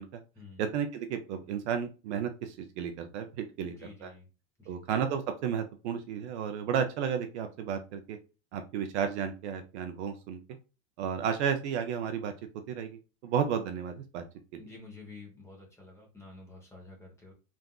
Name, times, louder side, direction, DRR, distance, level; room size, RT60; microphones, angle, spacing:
voice 1, 0.6-3.7 4.0-4.1 4.7-8.2 8.5-10.4 11.0-12.3 12.7-14.2 14.5-14.6, right 7 dB, 50° right, 6 dB, 0.5 m, -33 dB
voice 2, 3.6-4.3 4.6-4.8 14.6-17.3, left 3 dB, 5° left, -1 dB, 0.8 m, -50 dB
3.4 x 2.5 x 2.2 m, 0.32 s
supercardioid pair, 145°, 43 cm